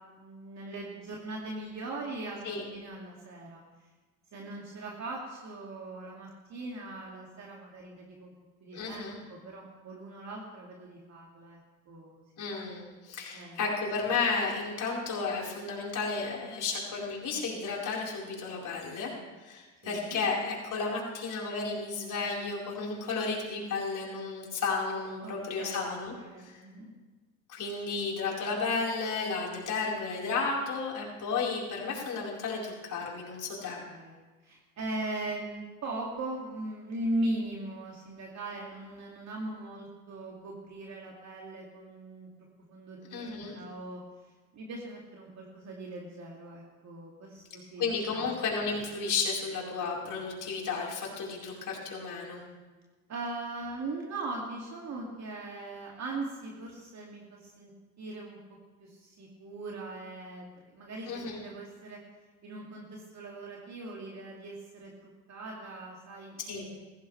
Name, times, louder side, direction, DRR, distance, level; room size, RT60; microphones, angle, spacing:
voice 1, 0.0-3.6 4.3-8.3 8.6-12.2 13.3-13.6 19.8-20.2 25.2-26.9 33.9-42.3 42.7-44.0 44.5-48.3 53.1-57.7 58.0-58.4 58.8-62.0 62.4-66.8, right 2 dB, 45° right, -2 dB, 2.5 m, -40 dB
voice 2, 8.7-9.2 12.4-19.1 19.4-26.1 26.4-26.5 27.5-33.8 43.1-43.5 47.8-52.4 61.1-61.4 66.4-66.7, left 4 dB, 50° left, -3 dB, 4.7 m, -33 dB
16.0 x 15.0 x 3.4 m, 1.3 s
hypercardioid pair, 80°, 40 cm